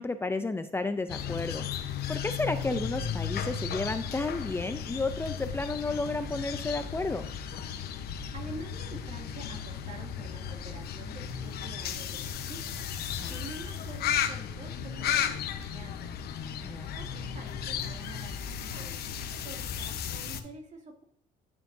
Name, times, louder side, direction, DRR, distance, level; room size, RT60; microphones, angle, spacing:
voice 1, 0.0-1.6 2.1-7.3 13.2-13.3 16.6-16.9, left 3 dB, 15° left, 9 dB, 0.5 m, -32 dB
sound 1, 1.1-20.4, left 8 dB, 70° left, 1.0 m, -35 dB
voice 2, 8.3-12.8 13.3-16.1 17.0-21.0, right 2 dB, 45° right, 1 dB, 2.5 m, -47 dB
13.0 x 7.0 x 2.7 m, 0.71 s
cardioid pair, 110°, 17 cm